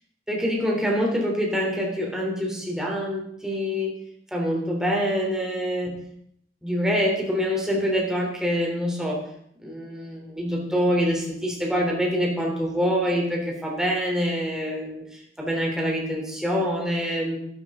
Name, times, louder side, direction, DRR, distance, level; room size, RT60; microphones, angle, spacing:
voice 1, 0.3-4.0 4.3-6.0 6.6-9.2 9.6-15.0 15.4-17.4, equal, 5° right, -2 dB, 3.3 m, -25 dB
12.5 x 12.0 x 3.8 m, 0.68 s
head